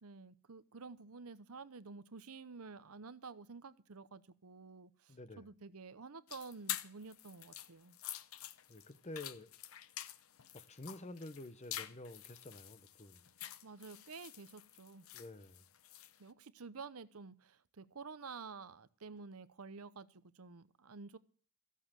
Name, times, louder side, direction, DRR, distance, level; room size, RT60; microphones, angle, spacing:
voice 1, 0.0-8.0 13.6-15.1 16.2-21.2, right 4 dB, 80° right, 0.8 m, -51 dB
voice 2, 5.1-5.4 8.7-9.5 10.5-13.2 15.1-15.6, left 2 dB, 30° left, 0.9 m, -49 dB
sound 1, 6.3-16.2, left 12 dB, 70° left, 0.7 m, -47 dB
15.0 x 8.3 x 7.5 m
head